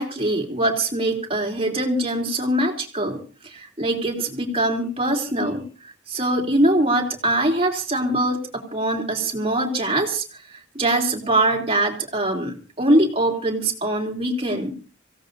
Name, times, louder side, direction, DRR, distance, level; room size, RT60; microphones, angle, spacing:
voice 1, 0.0-14.7, right 1 dB, 30° right, 2 dB, 3.4 m, -23 dB
26.0 x 17.0 x 2.7 m, 0.37 s
head